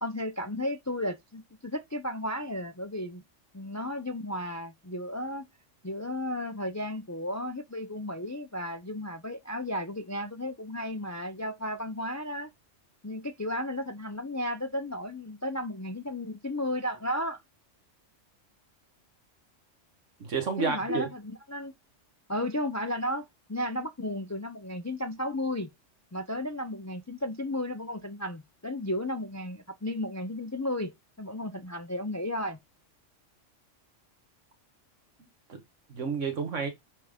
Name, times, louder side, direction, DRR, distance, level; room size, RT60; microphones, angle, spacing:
voice 1, 0.0-3.2 3.5-5.5 5.8-12.5 13.0-17.4 20.6-21.7 22.3-25.7 26.1-30.9 31.2-32.6, left 1 dB, 25° left, 0.3 m, -34 dB
voice 2, 20.2-21.1 35.5-35.6 35.9-36.7, right 5 dB, 75° right, 1.8 m, -30 dB
9.1 x 3.5 x 3.6 m
omnidirectional pair, 1.3 m